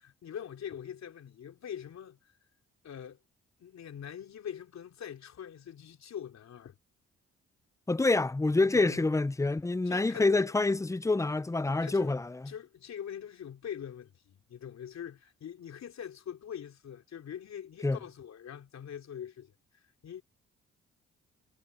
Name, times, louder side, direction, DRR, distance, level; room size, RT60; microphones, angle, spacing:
voice 1, 0.0-2.3 2.8-3.2 3.6-6.8 8.6-9.1 9.9-10.5 11.8-12.1 12.5-20.2, left 9 dB, 65° left, 3.5 m, -43 dB
voice 2, 7.9-12.5 17.8-18.0, left 3 dB, 10° left, 0.6 m, -27 dB
supercardioid pair, 65°, 29 cm